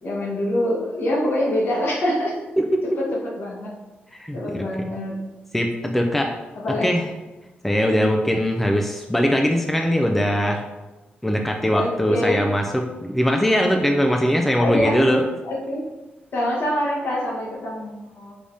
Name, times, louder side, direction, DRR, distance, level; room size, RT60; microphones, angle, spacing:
voice 1, 0.0-2.4 3.4-3.7 4.3-5.1 6.6-6.9 7.8-8.0 11.7-12.4 14.6-15.0 15.4-15.8 16.3-18.3, left 1 dB, 65° left, -3 dB, 1.2 m, -25 dB
voice 2, 4.1-4.6 5.5-6.3 6.7-7.1 7.6-10.7 11.2-15.2, equal, 5° left, 2 dB, 0.3 m, -21 dB
4.9 x 3.3 x 2.7 m, 1.1 s
wide cardioid pair, 135°, 4 cm